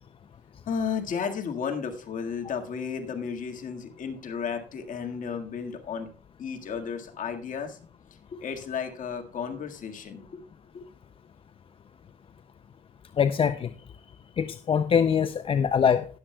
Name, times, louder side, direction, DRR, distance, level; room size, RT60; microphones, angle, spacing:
voice 1, 0.7-6.1 6.4-7.8 8.3-10.4 10.7-10.8, left 6 dB, 50° left, 4 dB, 1.8 m, -33 dB
voice 2, 13.2-13.7 14.4-16.1, left 7 dB, 35° left, 11 dB, 0.5 m, -23 dB
20.0 x 7.4 x 2.3 m, 0.40 s
cardioid pair, 110°, 17 cm